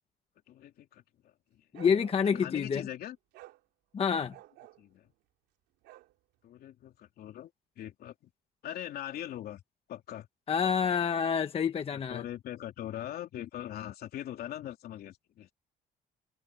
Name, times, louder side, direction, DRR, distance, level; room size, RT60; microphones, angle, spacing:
voice 1, 0.5-1.0 1.5-1.6 2.4-3.2 4.8-5.1 6.4-7.5 7.8-8.3 8.6-9.6 9.9-10.3 12.1-15.5, left 12 dB, 65° left, 3.3 m, -41 dB
voice 2, 1.7-2.8 3.9-4.3 10.5-12.2, left 7 dB, 35° left, 1.1 m, -28 dB
Bark, 1.7-2.6 3.3-3.6 4.1-4.8 5.8-6.1, right 16 dB, 90° right, 3.5 m, -51 dB
open air
cardioid pair, 110°, 17 cm